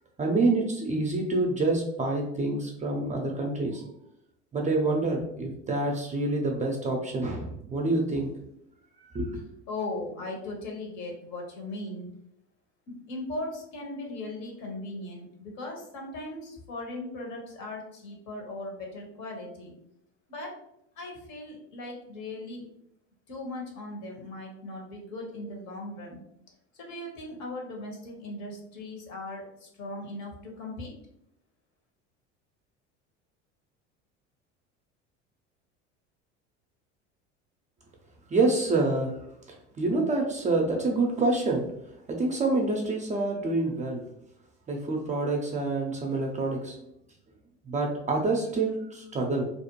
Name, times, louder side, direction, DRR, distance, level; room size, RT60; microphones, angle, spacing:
voice 1, 0.2-3.8 4.5-8.3 9.1-9.4 38.3-39.2 39.8-41.6 42.1-44.0 44.7-46.8 47.7-49.5, right 2 dB, 20° right, 1 dB, 0.4 m, -27 dB
voice 2, 9.7-12.1 12.9-19.7 20.3-20.6 21.0-22.6 23.3-26.2 26.8-30.9, left 2 dB, 55° left, 1 dB, 1.0 m, -38 dB
2.5 x 2.1 x 2.9 m, 0.78 s
hypercardioid pair, 75°, 35 cm